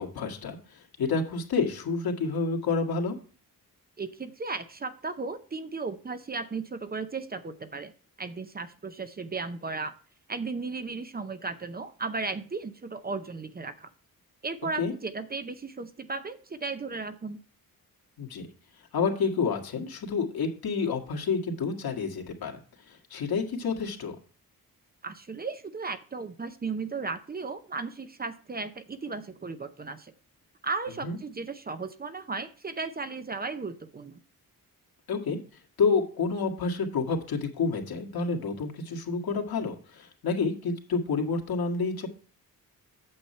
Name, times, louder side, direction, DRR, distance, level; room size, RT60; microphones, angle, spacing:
voice 1, 0.0-3.2 14.8-14.9 18.2-18.4 18.9-22.6 22.9-24.1 31.0-31.2 35.1-35.4 35.8-42.1, left 4 dB, 80° left, 2 dB, 2.0 m, -29 dB
voice 2, 4.0-7.9 8.2-9.9 10.3-13.9 14.4-17.4 25.0-30.1 30.6-34.2, right 4 dB, 25° right, 11 dB, 0.6 m, -35 dB
8.7 x 7.1 x 4.3 m, 0.41 s
wide cardioid pair, 130°, 36 cm